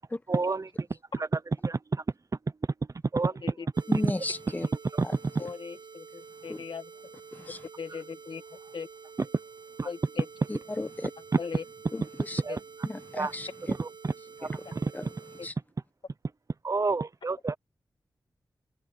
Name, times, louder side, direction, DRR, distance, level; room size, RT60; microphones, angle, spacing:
voice 1, 0.3-0.9 1.6-2.0 3.1-3.3 3.9-4.1 4.9-5.1 9.8-9.9 12.5-12.6 13.2-13.3 13.7-14.1 14.5-14.9 16.6-17.6, right 3 dB, 45° right, 0.7 m, -28 dB
sound 1, 3.7-15.5, right 5 dB, 75° right, 1.0 m, -49 dB
voice 2, 3.9-4.7 5.0-5.1 6.5-6.6 7.3-7.6 10.5-11.1 11.9-12.4 12.9-13.5 14.9-15.0 15.4-15.5, left 2 dB, 20° left, 1.2 m, -34 dB
voice 3, 5.4-6.9 7.8-8.4 8.7-8.9 9.8-10.3 11.4-11.6 12.5-12.6 14.7-14.8 15.4-15.5, left 5 dB, 80° left, 1.9 m, -39 dB
wide cardioid pair, 85°, 8 cm